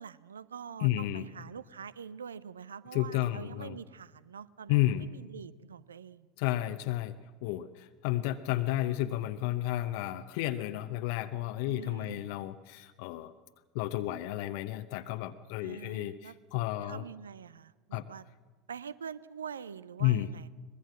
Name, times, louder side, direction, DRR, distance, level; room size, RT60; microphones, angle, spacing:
voice 1, 0.0-6.3 11.6-12.2 15.6-16.3 16.8-18.3 18.7-20.5, right 7 dB, 75° right, 19 dB, 0.6 m, -45 dB
voice 2, 0.8-1.3 2.9-3.8 4.7-5.1 6.4-7.1 7.4-13.3 13.7-17.0 17.9-18.1 20.0-20.3, left 14 dB, 60° left, 8 dB, 0.7 m, -32 dB
23.5 x 20.5 x 7.3 m, 1.3 s
figure-of-eight pair, 70°, 0 cm